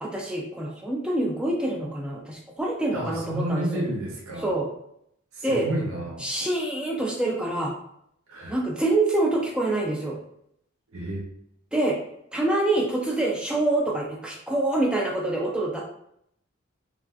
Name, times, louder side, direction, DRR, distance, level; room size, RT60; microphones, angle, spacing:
voice 1, 0.0-3.8 4.4-4.7 5.4-5.7 6.2-7.7 8.5-10.2 11.7-12.0 12.3-15.8, right 2 dB, 5° right, -2 dB, 0.3 m, -26 dB
voice 2, 2.9-4.6 5.3-6.2 8.3-8.6 10.9-11.3, right 1 dB, 85° right, -2 dB, 0.7 m, -31 dB
3.3 x 2.4 x 2.3 m, 0.73 s
head